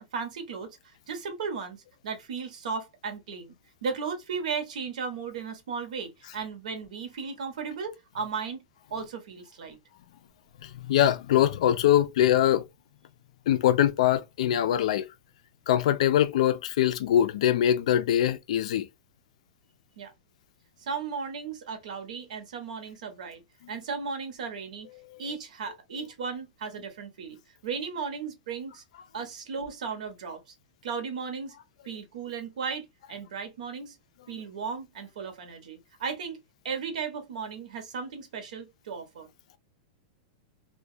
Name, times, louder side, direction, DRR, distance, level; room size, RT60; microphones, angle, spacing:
voice 1, 0.0-3.5 3.8-8.6 8.9-9.8 20.0-20.1 20.8-23.4 23.7-24.9 25.2-27.4 27.6-28.8 29.1-30.5 30.8-31.5 31.8-34.0 34.3-39.3, right 5 dB, 70° right, 0.9 m, -36 dB
voice 2, 10.6-12.6 13.5-15.1 15.7-18.9 25.0-25.2, left 11 dB, 55° left, 0.4 m, -23 dB
2.3 x 2.2 x 2.6 m
supercardioid pair, 180°, 4 cm